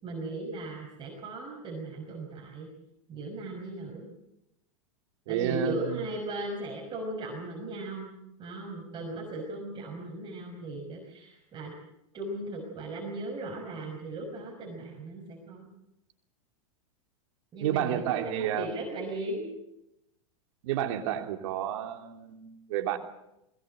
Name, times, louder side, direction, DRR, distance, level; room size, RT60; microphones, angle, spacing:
voice 1, 0.0-2.7 3.1-4.1 5.3-8.1 8.4-11.7 12.1-15.7 17.5-19.5, right 2 dB, 30° right, 0 dB, 5.6 m, -37 dB
voice 2, 5.3-6.0 17.6-18.7 20.6-23.0, right 11 dB, 65° right, 5 dB, 3.1 m, -31 dB
21.5 x 18.5 x 8.0 m, 0.85 s
hypercardioid pair, 120°, 17 cm